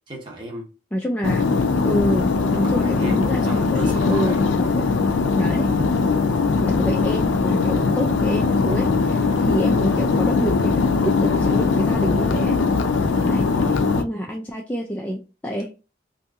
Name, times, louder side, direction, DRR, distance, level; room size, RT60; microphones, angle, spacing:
voice 1, 0.1-0.7 2.5-4.5, right 1 dB, 25° right, 0.9 m, -35 dB
voice 2, 0.9-1.5 1.8-4.7 5.4-5.7 6.5-12.6 13.2-15.7, equal, 10° left, 0.3 m, -28 dB
sound 1, 1.2-14.0, left 4 dB, 90° left, 0.4 m, -20 dB
2.8 x 2.6 x 3.5 m
head